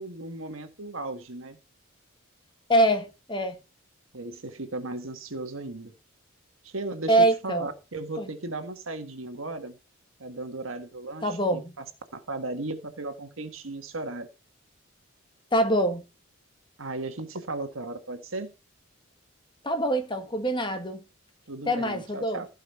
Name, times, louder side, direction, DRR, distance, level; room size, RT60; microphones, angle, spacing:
voice 1, 0.0-1.6 4.1-5.9 6.6-7.2 7.4-9.8 10.2-11.8 12.1-14.3 16.8-18.5 21.5-22.5, right 2 dB, 75° right, 1.6 m, -36 dB
voice 2, 2.7-3.6 7.1-7.7 8.2-8.3 11.2-11.8 15.5-16.0 19.6-21.0 21.6-22.4, right 1 dB, 25° left, 1.6 m, -24 dB
15.5 x 5.5 x 5.5 m
head